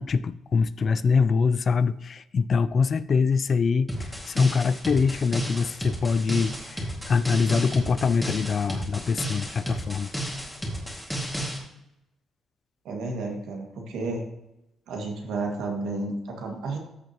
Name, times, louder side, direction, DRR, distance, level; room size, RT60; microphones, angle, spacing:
voice 1, 0.0-10.1, left 5 dB, 45° left, 16 dB, 0.4 m, -24 dB
sound 1, 3.9-11.6, equal, ahead, 2.1 m, -33 dB
voice 2, 12.8-14.2 14.9-16.8, right 3 dB, 85° right, 1 dB, 2.0 m, -31 dB
13.5 x 6.2 x 3.0 m, 0.90 s
cardioid pair, 90°, 0 cm